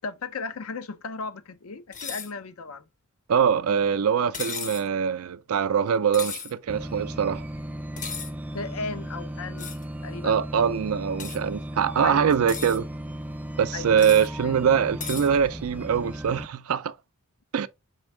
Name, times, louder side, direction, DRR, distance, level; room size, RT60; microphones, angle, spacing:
voice 1, 0.0-2.8 8.5-9.8 10.0-10.4 12.0-12.4 13.7-14.6, left 4 dB, 75° left, 0.6 m, -36 dB
sound 1, 1.9-2.3 4.3-4.9 6.1-6.5 8.0-8.3 9.6-9.8 11.2-11.4 12.3-12.8 14.0-14.3 15.0-15.3, left 6 dB, 35° left, 0.7 m, -35 dB
voice 2, 3.3-7.4 10.2-12.8 13.6-16.9 17.5-17.7, right 7 dB, 75° right, 0.4 m, -23 dB
sound 2, 6.7-16.5, equal, 10° right, 0.3 m, -36 dB
4.5 x 3.5 x 3.2 m
head